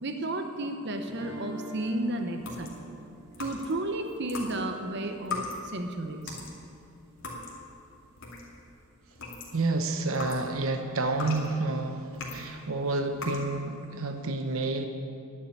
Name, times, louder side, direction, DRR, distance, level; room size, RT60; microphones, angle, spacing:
voice 1, 0.0-2.8 3.4-6.4, right 1 dB, 55° right, 6 dB, 0.9 m, -33 dB
sound 1, 1.1-6.0, equal, 15° right, 2.7 m, -46 dB
sound 2, 2.4-3.9 4.2-8.7 9.0-12.6 13.1-13.5, left 3 dB, 75° left, 2.6 m, -39 dB
voice 2, 9.5-14.9, right 2 dB, 80° right, 6 dB, 0.9 m, -29 dB
11.0 x 7.5 x 9.8 m, 2.5 s
head